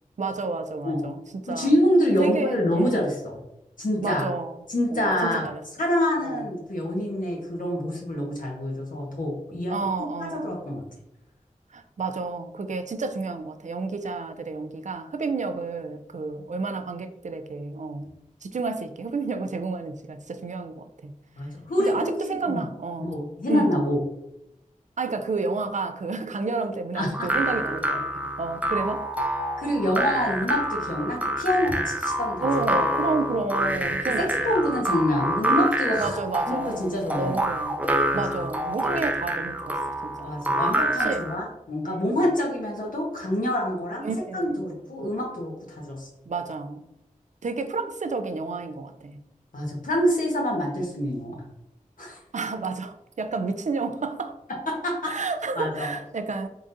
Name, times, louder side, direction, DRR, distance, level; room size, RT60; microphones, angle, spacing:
voice 1, 0.2-1.7 2.2-3.1 4.0-4.6 4.9-5.6 6.2-6.5 9.7-10.6 11.7-18.1 18.4-21.1 21.8-23.2 23.5-23.8 25.0-28.1 28.4-29.1 32.4-34.7 36.0-37.8 38.1-40.3 41.0-41.2 41.8-42.3 44.0-44.7 46.3-46.8 47.4-49.2 52.3-54.4 55.0-56.5, right 4 dB, 60° right, 0.4 m, -31 dB
voice 2, 1.5-3.4 3.8-4.2 4.7-5.5 5.8-9.8 10.2-10.8 21.4-22.6 23.0-24.0 26.9-27.3 29.6-32.5 34.2-36.2 36.5-37.4 38.1-38.2 40.2-44.1 44.3-46.1 49.5-51.4 52.0-52.2 54.7-55.1 55.6-55.9, left 1 dB, 75° left, 1.2 m, -26 dB
sound 1, 27.1-41.4, right 1 dB, 10° right, 0.6 m, -27 dB
3.7 x 3.7 x 2.6 m
cardioid pair, 40°, 14 cm